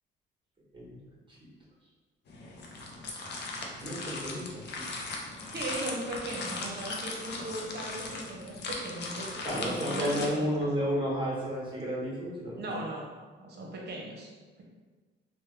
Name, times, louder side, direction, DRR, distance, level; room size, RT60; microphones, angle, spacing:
sound 1, 2.3-10.3, left 3 dB, 60° left, 0.6 m, -38 dB
voice 1, 3.8-4.8 9.4-12.6, equal, 25° right, -6 dB, 1.3 m, -32 dB
voice 2, 5.5-10.5 12.6-13.1 13.4-14.3, right 1 dB, 55° right, -2 dB, 0.8 m, -38 dB
3.2 x 2.2 x 3.1 m, 1.4 s
cardioid pair, 90°, 20 cm